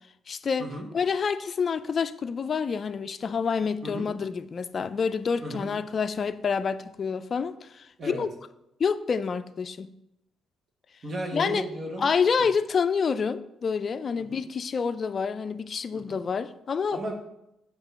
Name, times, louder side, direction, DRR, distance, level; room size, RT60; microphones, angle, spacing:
voice 1, 0.3-0.7 0.9-8.3 8.8-9.9 11.3-11.6 12.0-17.0, left 6 dB, 45° left, 12 dB, 0.4 m, -28 dB
voice 2, 11.0-12.1 14.3-14.4 15.9-16.2 16.9-17.1, right 1 dB, 45° right, 1 dB, 1.3 m, -35 dB
8.1 x 2.9 x 5.5 m, 0.86 s
cardioid pair, 90°, 0 cm